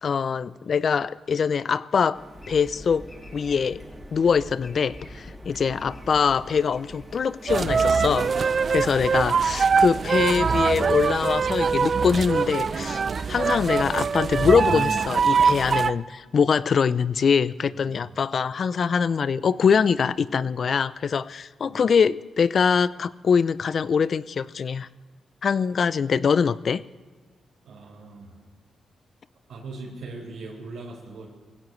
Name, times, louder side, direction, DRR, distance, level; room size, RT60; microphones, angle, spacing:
voice 1, 0.0-2.2 2.5-3.1 3.3-3.8 4.1-13.0 13.3-24.9 25.4-26.8, left 6 dB, 55° left, 17 dB, 0.5 m, -23 dB
sound 1, 2.1-10.8, right 1 dB, 15° right, 2.2 m, -47 dB
sound 2, 2.3-7.7, left 1 dB, 25° left, 4.4 m, -45 dB
sound 3, 7.5-15.9, right 5 dB, 50° right, 0.5 m, -23 dB
voice 2, 17.7-18.1 21.7-21.9 27.6-28.4 29.5-31.3, right 3 dB, 80° right, -4 dB, 4.0 m, -40 dB
21.5 x 16.0 x 3.2 m, 1.4 s
cardioid pair, 80°, 0 cm